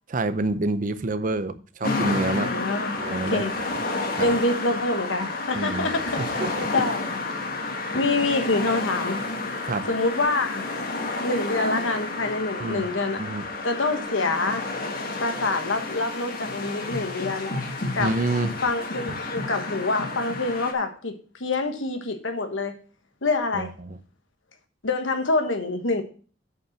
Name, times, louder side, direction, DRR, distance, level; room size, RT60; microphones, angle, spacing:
voice 1, 0.1-2.5 3.0-3.4 4.2-4.3 5.5-5.9 6.2-6.7 9.6-9.8 12.6-12.9 13.2-13.4 18.0-18.5 23.5-24.0, right 2 dB, 45° right, 12 dB, 0.6 m, -27 dB
sound 1, 1.8-20.7, left 2 dB, 50° left, 1.5 m, -30 dB
voice 2, 2.3-3.0 3.3-3.5 4.2-6.4 6.7-7.2 7.9-9.2 9.9-10.7 11.2-13.2 13.6-14.7 15.2-17.5 17.9-18.1 18.6-22.7 23.2-23.7 24.8-26.0, left 3 dB, 85° left, 7 dB, 1.3 m, -26 dB
8.2 x 5.4 x 5.9 m, 0.40 s
head